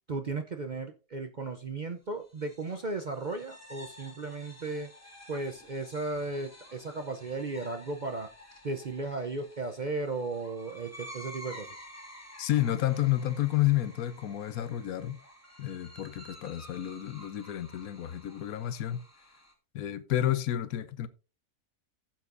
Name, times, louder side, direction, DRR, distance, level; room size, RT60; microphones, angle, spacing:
voice 1, 0.1-4.9 5.3-8.3 8.6-11.8, right 3 dB, 50° right, 0.5 m, -35 dB
sound 1, 2.2-19.5, equal, 10° left, 1.9 m, -51 dB
voice 2, 12.4-15.2 15.6-19.0 19.7-21.1, left 13 dB, 75° left, 1.2 m, -30 dB
15.5 x 7.5 x 2.5 m
omnidirectional pair, 1.6 m